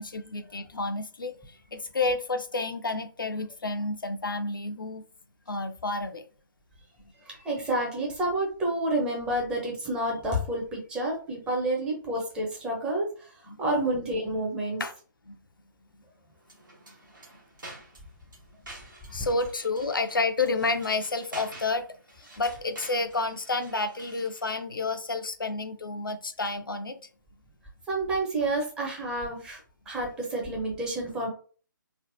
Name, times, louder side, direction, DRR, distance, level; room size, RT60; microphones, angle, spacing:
voice 1, 0.0-5.0 5.5-6.2 7.0-7.1 13.5-13.6 14.8-14.9 15.3-15.4 19.1-21.9 22.1-27.0, left 3 dB, 80° left, 0.4 m, -30 dB
voice 2, 7.2-14.8 27.9-29.6 29.9-31.3, right 1 dB, 10° right, 0.6 m, -29 dB
sound 1, 16.4-24.5, right 2 dB, 70° right, 1.2 m, -48 dB
3.2 x 2.1 x 2.6 m
figure-of-eight pair, 140°, 11 cm